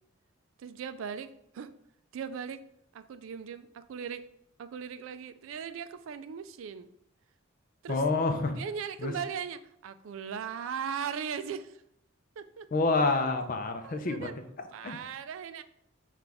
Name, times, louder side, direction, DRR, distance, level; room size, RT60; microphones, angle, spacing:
voice 1, 0.6-1.7 2.1-2.6 2.9-4.2 4.6-6.9 7.8-8.0 8.5-11.8 12.4-12.7 13.8-14.3 14.7-15.6, right 7 dB, 70° right, 11 dB, 0.3 m, -38 dB
voice 2, 7.9-8.6 9.0-9.1 12.7-14.3 14.8-15.0, left 3 dB, 45° left, 7 dB, 0.5 m, -28 dB
5.8 x 2.4 x 3.4 m, 0.72 s
head